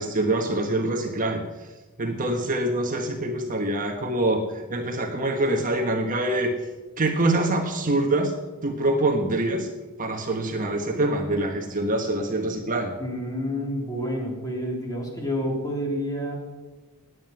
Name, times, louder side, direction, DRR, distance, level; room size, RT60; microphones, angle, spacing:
voice 1, 0.0-1.4 2.0-6.5 7.0-8.3 8.6-9.7 10.0-12.9, right 2 dB, 40° right, 3 dB, 1.4 m, -25 dB
voice 2, 13.0-16.4, equal, 15° left, -1 dB, 3.7 m, -29 dB
19.0 x 9.5 x 5.9 m, 1.2 s
head